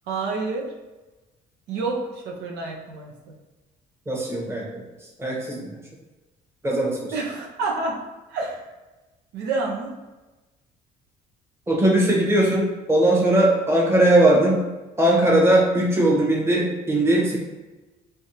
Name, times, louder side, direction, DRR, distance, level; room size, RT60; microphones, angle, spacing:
voice 1, 0.1-0.7 1.7-3.1 7.1-8.0 8.3-8.6 9.3-9.9, right 3 dB, 80° right, -1 dB, 0.7 m, -28 dB
voice 2, 4.1-4.6 5.2-5.7 6.6-7.1 11.7-14.6 15.0-17.4, right 1 dB, 15° right, -2 dB, 1.0 m, -19 dB
3.4 x 3.4 x 2.8 m, 1.1 s
cardioid pair, 110°, 17 cm